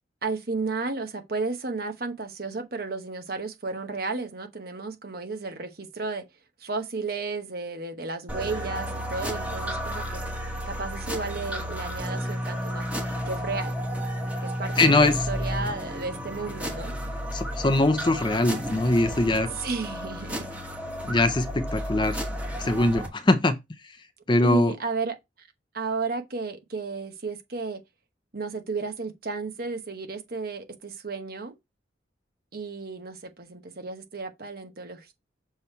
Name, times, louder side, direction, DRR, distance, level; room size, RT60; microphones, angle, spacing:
voice 1, 0.2-6.2 6.6-10.2 10.7-13.0 13.3-13.7 14.4-16.9 19.6-20.4 24.4-25.2 25.7-27.8 28.3-31.5 32.5-35.1, right 3 dB, 50° right, 1.0 m, -33 dB
sound 1, 8.3-23.1, equal, 10° right, 1.3 m, -32 dB
voice 2, 14.8-15.2 17.3-19.5 21.0-22.2 22.6-23.6 24.3-24.7, left 2 dB, 25° left, 0.6 m, -22 dB
6.9 x 3.2 x 4.3 m
head